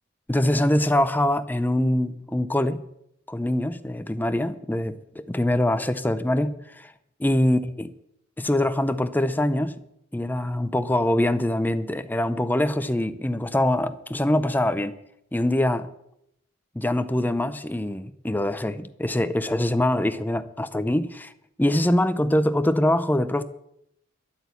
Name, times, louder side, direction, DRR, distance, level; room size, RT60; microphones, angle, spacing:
voice 1, 0.3-2.8 3.3-6.9 7.2-7.9 8.4-9.8 10.1-14.9 15.3-15.9 16.8-21.3 21.6-23.4, left 1 dB, 10° left, 0.6 m, -24 dB
12.5 x 8.6 x 8.3 m
head